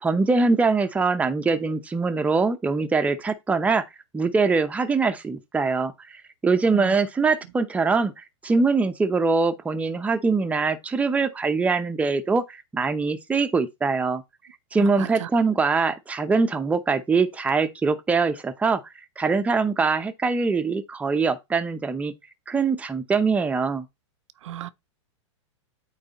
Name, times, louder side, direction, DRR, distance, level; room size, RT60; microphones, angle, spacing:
voice 1, 0.0-3.8 4.1-14.2 14.7-18.8 19.2-22.1 22.5-23.9, right 4 dB, 10° right, 0.7 m, -23 dB
voice 2, 14.8-15.3 24.4-24.7, right 12 dB, 80° right, 0.6 m, -35 dB
8.7 x 3.3 x 4.1 m
hypercardioid pair, 135°, 16 cm